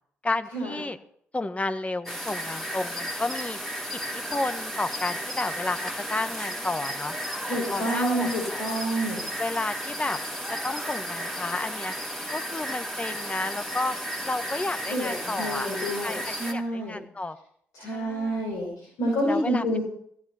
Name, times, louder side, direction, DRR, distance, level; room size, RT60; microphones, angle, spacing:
voice 1, 0.2-1.0 1.3-3.6 3.9-7.2 7.7-8.6 9.4-10.2 10.6-11.9 12.3-14.0 14.2-17.4 17.9-18.4 19.3-19.6, left 2 dB, 20° left, 10 dB, 1.5 m, -31 dB
sound 1, 2.1-16.5, equal, 5° left, 4.1 m, -34 dB
voice 2, 7.5-9.3 14.9-17.0 17.7-19.8, right 1 dB, 70° left, -3 dB, 5.8 m, -28 dB
15.5 x 14.0 x 4.4 m, 0.64 s
hypercardioid pair, 45°, 6 cm